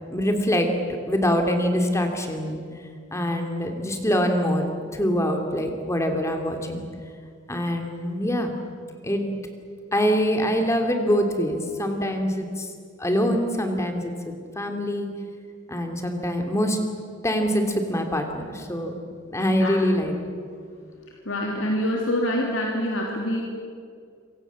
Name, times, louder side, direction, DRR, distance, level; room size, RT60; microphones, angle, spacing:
voice 1, 0.1-0.7 1.1-2.6 3.1-4.7 4.9-6.9 7.5-8.5 9.0-9.2 9.9-12.7 13.0-15.1 15.7-16.8 17.2-18.9 19.3-20.1, equal, 15° left, 4 dB, 3.0 m, -24 dB
voice 2, 21.2-23.4, left 1 dB, 80° left, 0 dB, 3.1 m, -25 dB
27.0 x 24.5 x 7.4 m, 2.3 s
head